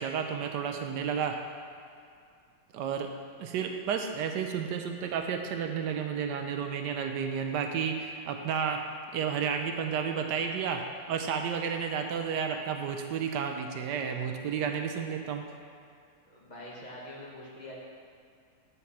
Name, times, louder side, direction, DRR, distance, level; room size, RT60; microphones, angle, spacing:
voice 1, 0.0-1.4 2.7-3.1 3.4-8.8 9.1-10.8 11.1-15.4, right 7 dB, 70° right, 5 dB, 1.1 m, -31 dB
voice 2, 16.3-17.7, left 1 dB, 25° left, -5 dB, 1.2 m, -44 dB
8.6 x 4.6 x 5.7 m, 2.3 s
omnidirectional pair, 2.1 m